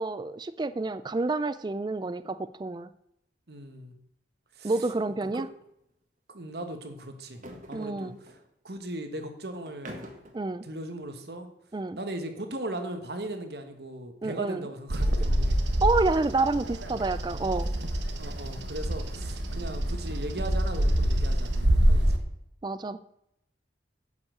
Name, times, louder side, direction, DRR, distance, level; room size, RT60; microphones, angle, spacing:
voice 1, 0.0-2.9 4.6-5.5 7.7-8.2 10.3-10.6 11.7-12.0 14.2-14.7 15.8-17.7 22.6-23.0, right 3 dB, 25° right, 13 dB, 0.4 m, -28 dB
voice 2, 3.5-3.9 4.5-4.7 5.3-5.4 6.3-8.4 8.6-10.1 10.6-11.5 11.9-15.8 18.2-22.3, right 1 dB, 60° right, 7 dB, 1.5 m, -38 dB
sound 1, 4.8-5.0 5.3-5.4 7.2-8.4 9.6-10.4, equal, 45° right, 1.7 m, -45 dB
Bird vocalization bird call bird song, 14.9-22.2, equal, 80° right, 1.3 m, -26 dB
9.5 x 5.7 x 7.9 m, 0.79 s
head